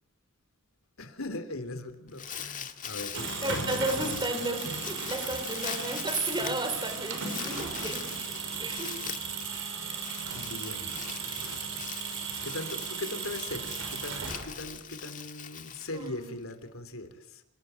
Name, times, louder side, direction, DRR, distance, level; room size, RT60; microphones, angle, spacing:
voice 1, 1.0-3.2 7.2-7.8 10.3-11.0 11.3-11.6 12.4-17.4, left 2 dB, 75° left, 9 dB, 3.2 m, -40 dB
Crumpling crinkling, 1.9-16.5, left 8 dB, 40° left, 2.0 m, -42 dB
sound 1, 2.9-14.8, right 5 dB, 65° right, 6.3 m, -36 dB
voice 2, 3.4-8.2 8.6-9.0 15.9-16.3, right 2 dB, 20° right, 8 dB, 4.0 m, -33 dB
29.5 x 19.0 x 9.3 m, 0.82 s
head